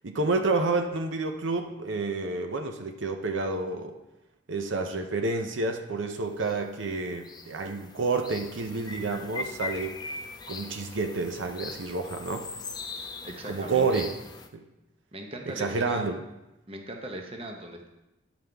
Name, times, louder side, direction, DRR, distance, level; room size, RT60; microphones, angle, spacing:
voice 1, 0.0-3.9 4.5-9.9 10.5-12.5 13.5-14.1 14.5-14.6 15.5-16.2, right 3 dB, 80° right, 5 dB, 0.7 m, -29 dB
sound 1, 6.4-6.6 6.8-14.5, left 4 dB, 20° left, 0.4 m, -41 dB
voice 2, 13.2-14.0 15.1-16.0 16.7-17.9, right 1 dB, 30° right, 3 dB, 0.8 m, -39 dB
10.5 x 5.6 x 3.4 m, 0.95 s
head